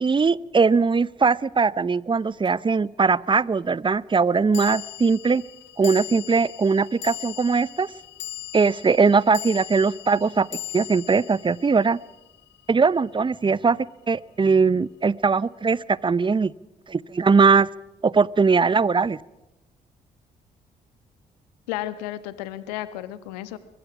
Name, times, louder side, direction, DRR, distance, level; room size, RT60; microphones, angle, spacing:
voice 1, 0.0-5.4 5.8-7.9 8.5-10.5 10.7-12.0 12.7-13.8 14.1-16.5 16.9-17.7 18.0-19.2, right 4 dB, 25° right, 21 dB, 0.7 m, -20 dB
sound 1, 2.4-2.5 4.5-13.0, left 14 dB, 60° left, 2.3 m, -39 dB
voice 2, 21.7-23.6, left 13 dB, 80° left, 14 dB, 1.2 m, -33 dB
23.5 x 23.0 x 6.1 m, 0.99 s
hypercardioid pair, 45°, 21 cm